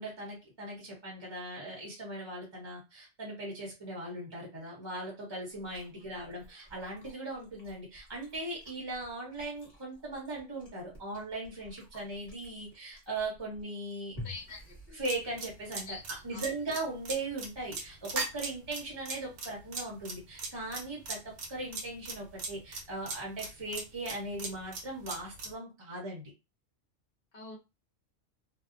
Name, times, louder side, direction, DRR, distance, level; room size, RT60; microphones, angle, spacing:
voice 1, 0.0-14.2 14.9-26.3, right 2 dB, 25° right, -3 dB, 0.7 m, -39 dB
Chewing mastication, 5.5-15.7, left 2 dB, 20° left, 1.3 m, -52 dB
voice 2, 14.2-15.0 15.9-16.4 27.3-27.6, left 3 dB, 50° left, -5 dB, 1.1 m, -46 dB
sound 1, 15.1-25.5, right 4 dB, 70° right, 1.0 m, -38 dB
2.6 x 2.1 x 2.4 m, 0.26 s
omnidirectional pair, 1.3 m